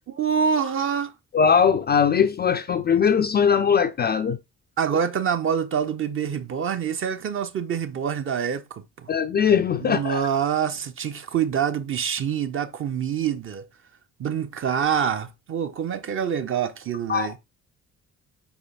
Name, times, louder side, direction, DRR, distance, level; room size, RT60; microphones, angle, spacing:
voice 1, 0.2-1.1 4.8-9.1 9.8-13.7 14.2-17.4, right 7 dB, 30° right, 0.5 m, -26 dB
voice 2, 1.3-4.4 9.1-10.3 17.1-17.4, left 7 dB, 25° left, 0.4 m, -20 dB
5.0 x 4.4 x 2.4 m
figure-of-eight pair, 45°, 41 cm